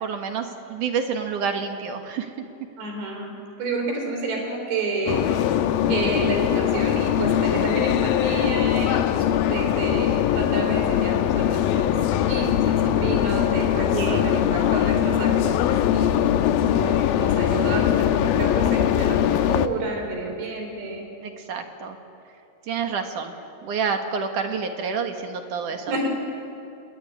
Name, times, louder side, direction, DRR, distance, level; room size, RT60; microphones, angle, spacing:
voice 1, 0.0-2.3 13.9-14.2 21.2-22.0 22.7-23.4 23.6-26.0, right 6 dB, 60° right, 5 dB, 2.6 m, -28 dB
voice 2, 2.8-5.6 5.9-11.9 12.3-15.6 15.9-16.3 16.6-21.0 25.9-26.1, right 3 dB, 85° right, 3 dB, 6.5 m, -30 dB
sound 1, 5.1-19.7, left 11 dB, 75° left, 2.3 m, -21 dB
27.5 x 21.0 x 9.8 m, 2.7 s
omnidirectional pair, 4.8 m